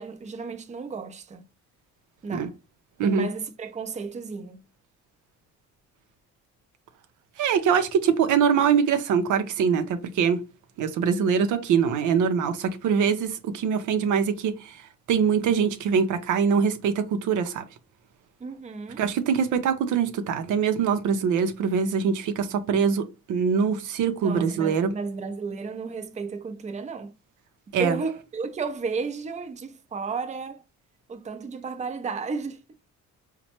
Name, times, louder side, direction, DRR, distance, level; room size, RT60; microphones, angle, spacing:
voice 1, 0.0-1.5 2.2-2.5 3.0-4.6 18.4-19.0 24.2-27.1 27.8-30.6 31.1-32.6, right 4 dB, 25° right, 0.5 m, -33 dB
voice 2, 7.4-10.4 10.8-14.7 15.1-17.6 19.0-24.9 27.7-28.0, right 6 dB, 80° right, 0.6 m, -23 dB
4.1 x 2.2 x 2.9 m
cardioid pair, 90°, 30 cm